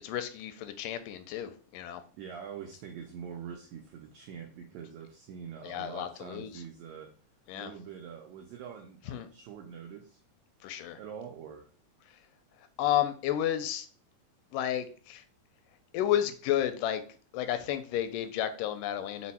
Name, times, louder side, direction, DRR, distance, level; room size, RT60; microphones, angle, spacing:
voice 1, 0.0-2.0 5.6-6.6 7.5-7.7 9.1-9.3 10.6-11.0 12.8-13.9 14.5-15.2 15.9-17.0 17.3-19.3, left 11 dB, 85° left, 10 dB, 2.1 m, -31 dB
voice 2, 2.2-7.1 7.5-10.2 11.0-11.7, right 7 dB, 85° right, 3 dB, 1.5 m, -44 dB
5.1 x 2.1 x 4.1 m, 0.40 s
omnidirectional pair, 3.7 m